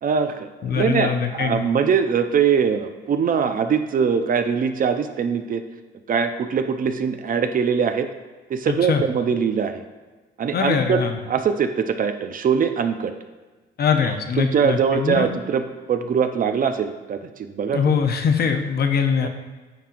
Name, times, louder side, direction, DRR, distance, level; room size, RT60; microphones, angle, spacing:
voice 1, 0.0-5.6 6.1-8.1 8.5-9.8 10.4-13.1 14.0-17.8 19.2-19.3, right 6 dB, 45° right, 8 dB, 0.5 m, -22 dB
voice 2, 0.6-1.6 8.7-9.0 10.5-11.2 13.8-15.3 17.7-19.3, left 6 dB, 55° left, 5 dB, 0.7 m, -22 dB
9.1 x 4.3 x 2.5 m, 1.3 s
cardioid pair, 90°, 20 cm